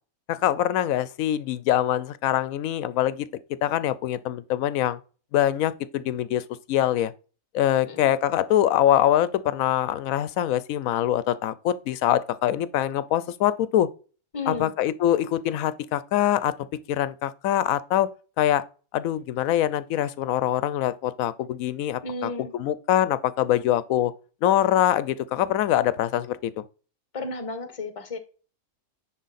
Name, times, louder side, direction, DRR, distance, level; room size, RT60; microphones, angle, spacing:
voice 1, 0.3-3.3 3.6-5.0 5.3-6.4 6.7-7.1 7.5-13.9 14.5-16.5 16.9-18.1 18.4-18.6 18.9-24.1 24.4-26.5, left 12 dB, 75° left, 1.0 m, -24 dB
voice 2, 14.3-14.7 22.0-22.6 27.1-28.2, left 2 dB, 25° left, 1.0 m, -33 dB
10.0 x 4.0 x 4.1 m
omnidirectional pair, 1.5 m